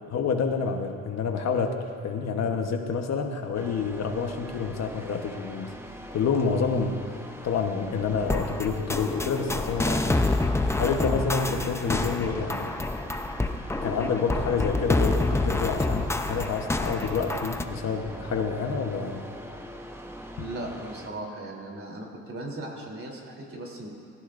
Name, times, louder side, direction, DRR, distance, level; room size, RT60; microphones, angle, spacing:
voice 1, 0.1-5.7 6.1-7.1 7.4-10.2 10.8-12.8 13.8-19.3, left 5 dB, 60° left, 4 dB, 1.2 m, -28 dB
sound 1, 3.5-21.1, equal, 10° right, 1.1 m, -42 dB
sound 2, 8.3-17.6, left 2 dB, 10° left, 0.6 m, -27 dB
voice 2, 20.4-23.9, right 1 dB, 45° right, -1 dB, 3.4 m, -38 dB
19.5 x 17.0 x 2.6 m, 2.4 s
cardioid pair, 90°, 30 cm